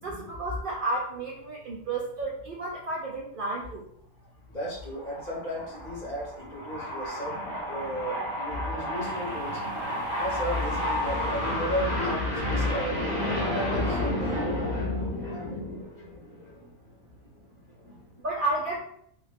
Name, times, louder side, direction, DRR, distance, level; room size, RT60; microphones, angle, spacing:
voice 1, 0.0-3.8 18.2-18.8, right 2 dB, 60° right, -3 dB, 0.6 m, -31 dB
voice 2, 4.2-18.2, left 1 dB, 40° left, -5 dB, 0.8 m, -30 dB
sound 1, 5.0-5.3 8.9-14.1, right 4 dB, 80° right, 0.9 m, -45 dB
2.5 x 2.3 x 3.3 m, 0.68 s
omnidirectional pair, 1.3 m